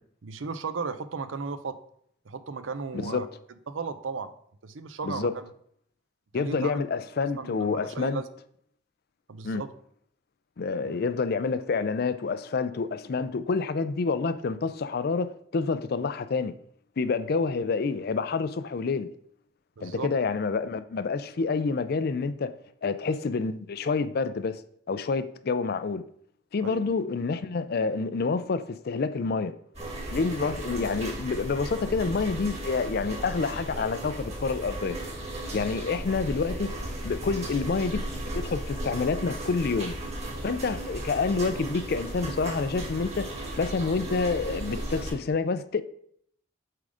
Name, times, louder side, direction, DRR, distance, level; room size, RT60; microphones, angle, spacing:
voice 1, 0.2-1.8 2.3-3.3 3.7-4.3 4.6-5.4 6.3-6.8 7.4-8.2 9.3-9.7 19.8-20.1 26.6-26.8 35.7-35.8, right 4 dB, 85° right, 0.6 m, -35 dB
voice 2, 2.9-3.2 5.0-5.3 6.3-8.2 9.4-9.6 10.6-16.5 17.0-19.1 19.8-22.5 22.8-24.6 24.9-26.0 26.5-29.5 30.1-35.0 35.5-36.7 37.0-38.0 38.3-40.0 40.4-43.3 43.6-45.8, left 4 dB, 55° left, 0.4 m, -28 dB
sound 1, 29.7-45.1, right 1 dB, 35° right, 1.9 m, -35 dB
7.6 x 3.7 x 4.9 m
head